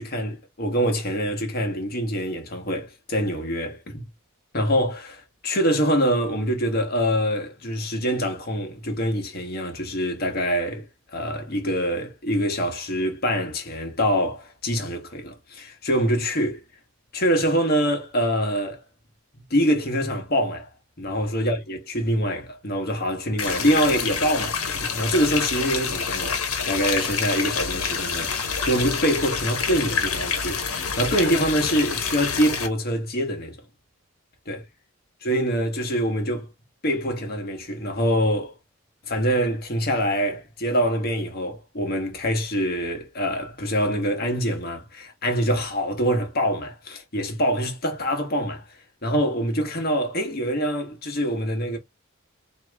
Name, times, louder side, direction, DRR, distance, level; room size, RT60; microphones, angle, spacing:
voice 1, 0.0-4.0 4.5-16.6 17.1-18.8 19.3-20.7 21.0-26.4 26.7-33.6 34.5-34.6 35.2-36.5 36.8-38.6 39.1-48.6 49.0-51.8, equal, 45° left, 1.2 m, -25 dB
sound 1, 23.4-32.7, left 6 dB, 80° left, 1.2 m, -27 dB
4.6 x 2.8 x 3.5 m
head